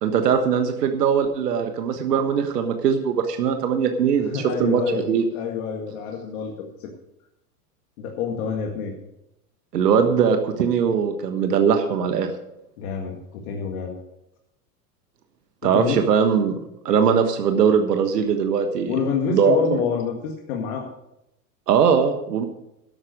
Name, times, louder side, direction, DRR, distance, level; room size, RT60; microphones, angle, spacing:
voice 1, 0.0-5.2 9.7-12.3 15.6-16.6 16.8-19.0 19.3-19.8 21.7-22.4, right 7 dB, 90° right, 6 dB, 1.4 m, -20 dB
voice 2, 4.2-6.9 8.0-8.9 12.8-14.0 15.6-16.0 18.9-20.9, left 6 dB, 65° left, 1 dB, 2.0 m, -28 dB
11.5 x 8.3 x 6.5 m, 0.85 s
hypercardioid pair, 115°, 46 cm